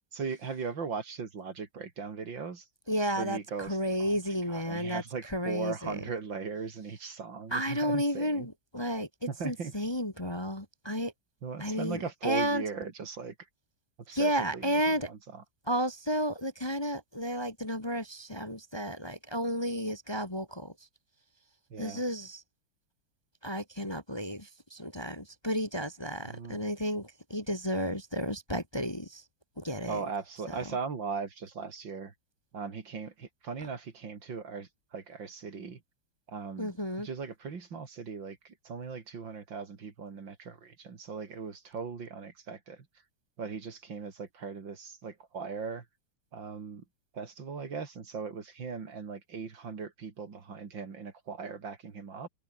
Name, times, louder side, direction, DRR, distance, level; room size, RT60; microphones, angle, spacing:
voice 1, 0.1-2.7 3.2-4.1 4.5-8.5 9.3-9.7 11.4-13.5 14.1-15.4 21.7-22.0 26.2-26.6 29.9-32.1 32.5-35.8 36.3-42.9 43.4-45.9 46.3-46.8 47.1-52.3, right 5 dB, 60° right, 3.2 m, -39 dB
voice 2, 2.9-5.0 5.3-6.0 7.5-11.1 11.6-12.6 14.1-15.1 15.7-20.7 21.8-22.4 23.4-29.2 29.6-30.0 36.6-37.1, equal, 15° left, 1.8 m, -32 dB
open air
omnidirectional pair, 2.3 m